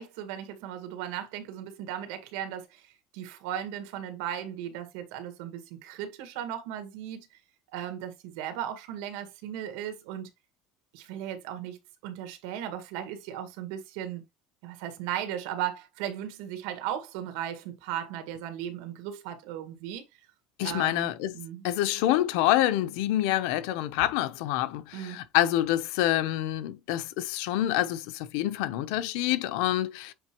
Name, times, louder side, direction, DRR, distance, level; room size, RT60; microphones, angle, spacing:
voice 1, 0.0-7.3 7.7-10.3 10.9-11.8 12.0-14.2 14.6-20.0 20.6-21.6 24.9-25.2, right 10 dB, 85° right, 1.8 m, -36 dB
voice 2, 20.6-30.1, left 14 dB, 80° left, 0.8 m, -27 dB
7.9 x 4.3 x 3.0 m
cardioid pair, 155°, 0 cm